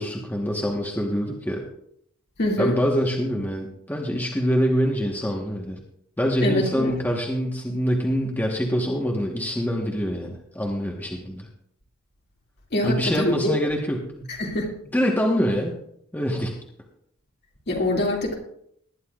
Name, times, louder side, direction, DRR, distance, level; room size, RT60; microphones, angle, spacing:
voice 1, 0.0-1.6 2.6-5.8 6.2-11.5 12.8-14.3 14.9-15.7 16.1-16.6, equal, 10° left, -1 dB, 1.2 m, -25 dB
voice 2, 2.4-2.7 6.4-6.9 12.7-13.5 14.3-14.7 17.7-18.3, left 1 dB, 50° left, -1 dB, 2.5 m, -24 dB
19.5 x 11.0 x 2.4 m, 0.71 s
head